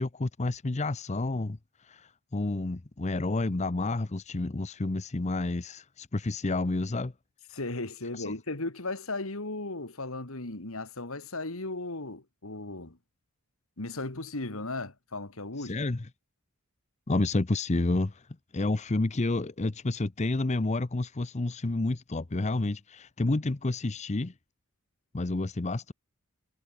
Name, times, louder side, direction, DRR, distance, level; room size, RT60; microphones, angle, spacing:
voice 1, 0.0-7.1 8.1-8.4 15.6-16.1 17.1-18.3 18.5-24.3 25.1-25.9, left 2 dB, 30° left, 0.7 m, -30 dB
voice 2, 7.5-13.0 13.8-15.8, left 2 dB, 65° left, 2.5 m, -36 dB
head